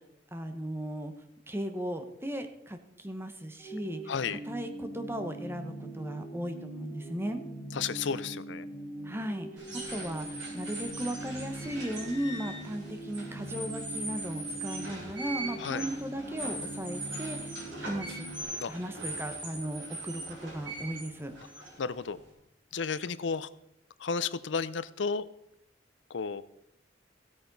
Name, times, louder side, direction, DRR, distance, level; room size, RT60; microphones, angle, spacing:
voice 1, 0.3-1.1 1.5-4.0 4.3-7.4 9.0-9.5 9.9-18.3 18.7-21.3, right 1 dB, 15° right, 8 dB, 1.0 m, -36 dB
sound 1, 3.6-18.4, right 1 dB, 5° left, 3.4 m, -42 dB
voice 2, 4.1-4.4 7.7-8.7 15.6-15.8 18.6-18.7 21.8-22.2 22.7-23.5 24.0-25.3 26.1-26.4, left 5 dB, 75° left, 16 dB, 0.6 m, -32 dB
sound 2, 9.6-22.3, right 2 dB, 85° right, 4.7 m, -41 dB
15.5 x 8.6 x 4.0 m, 0.79 s
head